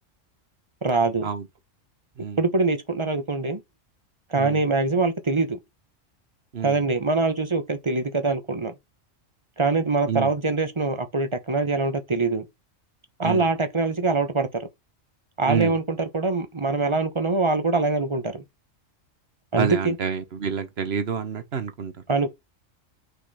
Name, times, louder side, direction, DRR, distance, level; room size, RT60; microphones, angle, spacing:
voice 1, 0.8-1.3 2.4-3.6 4.3-5.6 6.6-8.7 9.6-12.5 13.2-14.6 15.4-18.4 19.5-20.0 22.1-22.3, right 3 dB, 25° right, 0.9 m, -23 dB
voice 2, 15.5-15.8 19.6-21.9, right 7 dB, 55° right, 1.2 m, -28 dB
6.2 x 4.0 x 4.2 m
omnidirectional pair, 1.3 m